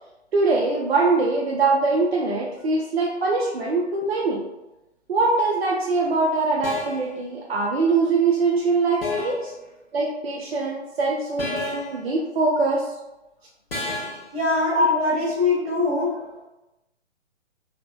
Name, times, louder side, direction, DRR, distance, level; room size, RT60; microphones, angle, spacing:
voice 1, 0.3-4.4 5.1-9.5 9.9-12.9 14.7-14.9, right 3 dB, 65° right, -3 dB, 0.4 m, -22 dB
sound 1, 5.4-5.6 6.6-7.1 9.0-9.5 11.4-12.0 13.7-14.3, left 3 dB, 55° left, 0.8 m, -31 dB
voice 2, 14.3-16.2, left 3 dB, 35° right, -5 dB, 1.0 m, -23 dB
2.9 x 2.0 x 2.2 m, 0.99 s
figure-of-eight pair, 130°, 34 cm